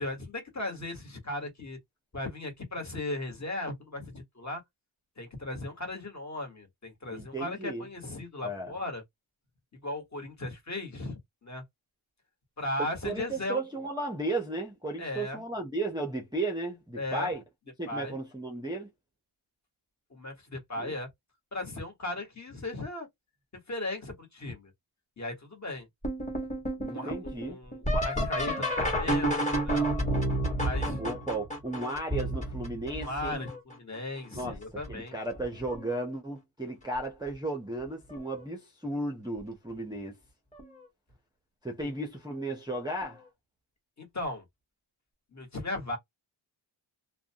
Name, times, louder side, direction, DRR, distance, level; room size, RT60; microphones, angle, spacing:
voice 1, 0.0-1.8 2.1-4.6 5.2-9.0 9.8-11.6 12.6-13.6 15.0-15.4 16.9-17.3 17.9-18.2 20.1-21.1 21.5-23.1 23.7-24.7 25.2-25.9 26.8-29.9 30.6-31.0 33.0-35.1 44.0-44.4 45.3-46.0, left 2 dB, 35° left, 1.3 m, -37 dB
voice 2, 7.1-7.9 8.4-8.7 12.8-17.4 17.8-18.9 20.8-20.9 26.8-27.6 31.0-33.4 34.4-34.6 34.9-40.2 41.6-43.2, right 2 dB, 10° right, 0.5 m, -35 dB
sound 1, 26.0-33.7 34.4-34.9 35.4-36.0 37.3-37.4 38.1-38.4 40.6-40.7 43.0-43.1, right 1 dB, 15° left, 1.3 m, -31 dB
2.4 x 2.2 x 2.7 m
wide cardioid pair, 120°, 49 cm